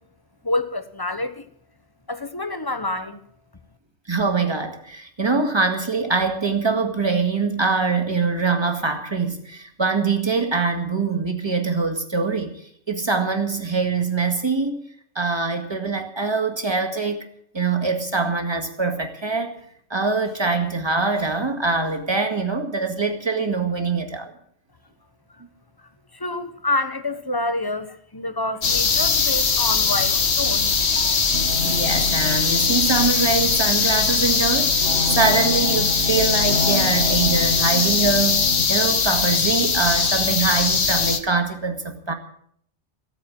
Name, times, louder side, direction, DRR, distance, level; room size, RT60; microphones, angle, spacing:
voice 1, 0.4-1.5 2.1-3.2 26.1-31.4, left 2 dB, 20° left, 11 dB, 1.1 m, -28 dB
voice 2, 4.1-12.5 12.9-14.8 15.2-17.2 17.5-19.5 19.9-24.3 31.6-42.1, right 4 dB, 25° right, 5 dB, 2.0 m, -23 dB
sound 1, 28.6-41.2, left 5 dB, 70° left, 1.6 m, -21 dB
sound 2, 31.3-38.7, left 2 dB, 85° left, 2.1 m, -30 dB
15.0 x 9.1 x 9.1 m, 0.67 s
omnidirectional pair, 1.2 m